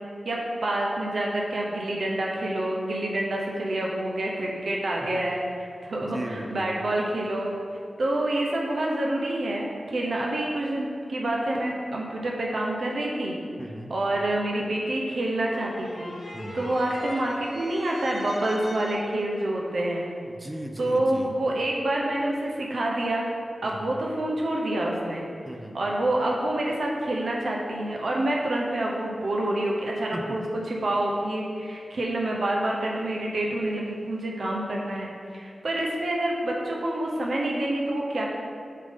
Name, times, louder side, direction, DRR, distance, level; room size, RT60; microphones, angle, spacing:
voice 1, 0.2-7.5 8.0-13.4 13.9-20.0 20.8-23.3 23.6-25.2 25.7-38.3, right 1 dB, 75° right, -2 dB, 0.8 m, -27 dB
voice 2, 6.0-6.7 13.6-13.9 16.3-16.7 20.3-21.4 23.6-24.0 25.4-25.8 30.1-30.4, right 1 dB, 10° right, 3 dB, 0.5 m, -37 dB
sound 1, 15.4-19.3, left 1 dB, 60° left, 1.1 m, -40 dB
7.4 x 3.8 x 3.7 m, 2.4 s
wide cardioid pair, 75°, 0 cm